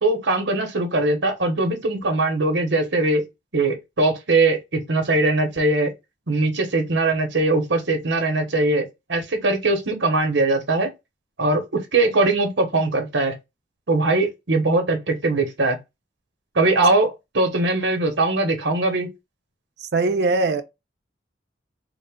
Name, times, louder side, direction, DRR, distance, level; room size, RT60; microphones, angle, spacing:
voice 1, 0.0-3.3 3.5-5.9 6.3-10.9 11.4-13.3 13.9-15.8 16.5-19.1, right 2 dB, 85° right, 1.1 m, -21 dB
voice 2, 19.8-20.6, right 3 dB, 60° right, 0.4 m, -21 dB
3.8 x 2.2 x 3.5 m
head